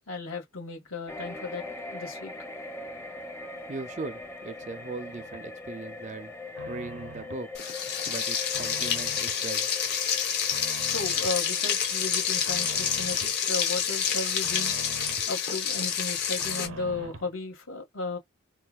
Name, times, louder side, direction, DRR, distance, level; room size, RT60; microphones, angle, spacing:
voice 1, 0.1-2.3 10.8-14.7 15.3-18.2, left 3 dB, 80° left, 1.7 m, -35 dB
sound 1, 1.1-15.7 16.0-16.2, left 3 dB, 10° left, 0.6 m, -42 dB
voice 2, 3.7-6.3 6.7-7.5 8.1-9.7, right 3 dB, 35° right, 0.4 m, -39 dB
sound 2, 4.6-5.5 5.9-7.5 7.9-9.4 9.8-11.4 11.8-13.4 13.8-15.3 15.7-17.3, right 4 dB, 75° right, 0.6 m, -45 dB
Frying (food), 7.5-16.7, left 7 dB, 50° left, 0.9 m, -28 dB
4.3 x 2.3 x 2.3 m
head